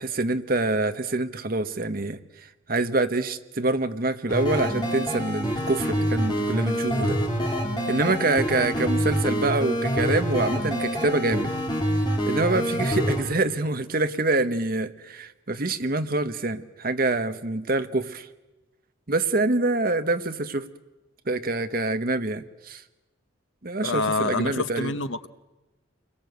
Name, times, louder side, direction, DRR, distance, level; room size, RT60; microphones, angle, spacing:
voice 1, 0.0-2.2 2.7-7.2 7.9-11.5 12.3-18.3 19.1-20.7 21.3-22.8 23.6-24.9, right 2 dB, 45° right, 9 dB, 1.1 m, -26 dB
sound 1, 4.3-13.2, equal, 20° left, 3.8 m, -26 dB
voice 2, 23.8-25.3, left 3 dB, 65° left, 11 dB, 1.1 m, -26 dB
28.0 x 21.5 x 8.1 m, 1.1 s
head